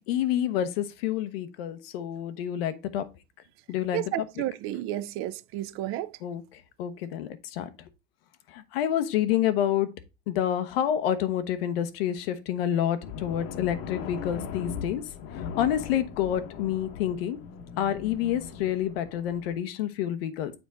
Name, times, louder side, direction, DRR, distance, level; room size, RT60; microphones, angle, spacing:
voice 1, 0.0-3.0 3.7-4.2 6.2-6.4 6.8-7.7 8.5-9.9 10.3-15.0 15.6-17.4 17.8-20.5, left 10 dB, 85° left, 0.9 m, -28 dB
voice 2, 3.9-6.1, right 14 dB, 50° right, 0.5 m, -32 dB
sound 1, 13.0-19.6, left 7 dB, 55° left, 0.9 m, -39 dB
7.1 x 4.2 x 3.4 m
supercardioid pair, 135°, 29 cm